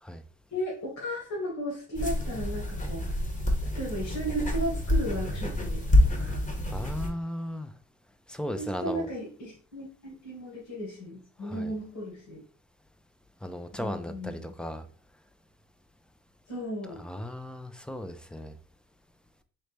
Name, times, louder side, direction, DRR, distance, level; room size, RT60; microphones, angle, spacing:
voice 1, 0.5-3.2 3.6-6.5 8.6-12.4 13.7-14.5 16.5-17.0, equal, 70° left, -4 dB, 2.0 m, -35 dB
sound 1, 1.9-7.1, left 1 dB, 25° left, 1.1 m, -27 dB
voice 2, 6.7-7.7 8.3-9.1 11.4-11.7 13.4-14.9 17.0-18.5, left 1 dB, 5° left, 9 dB, 0.5 m, -36 dB
4.1 x 3.2 x 3.3 m, 0.42 s
cardioid pair, 90°, 30 cm